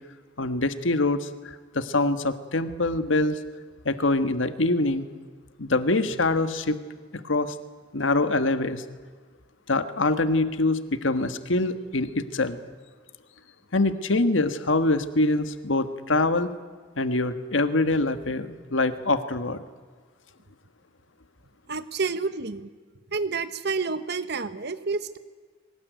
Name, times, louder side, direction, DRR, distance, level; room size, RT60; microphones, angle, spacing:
voice 1, 0.4-1.3 1.7-3.4 3.8-5.1 5.6-6.8 7.1-7.5 7.9-8.8 9.7-12.6 13.7-16.5 17.0-19.6, left 2 dB, 85° left, 10 dB, 1.5 m, -24 dB
voice 2, 21.7-22.7 23.1-25.2, right 4 dB, 60° right, 12 dB, 1.3 m, -29 dB
22.5 x 19.5 x 9.3 m, 1.5 s
head